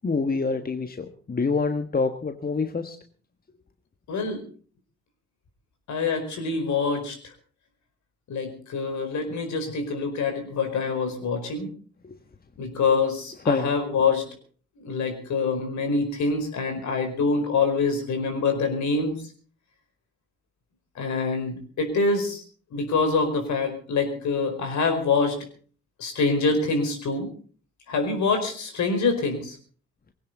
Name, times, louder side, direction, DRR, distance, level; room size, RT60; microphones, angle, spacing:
voice 1, 0.0-3.0 13.5-13.7, left 4 dB, 30° left, 8 dB, 1.5 m, -26 dB
voice 2, 4.1-4.4 5.9-7.3 8.3-11.7 12.6-14.2 14.8-19.1 20.9-22.4 22.7-25.4 26.0-27.3 27.9-29.6, left 4 dB, 60° left, 6 dB, 4.8 m, -25 dB
20.0 x 17.0 x 4.0 m, 0.42 s
hypercardioid pair, 45°, 32 cm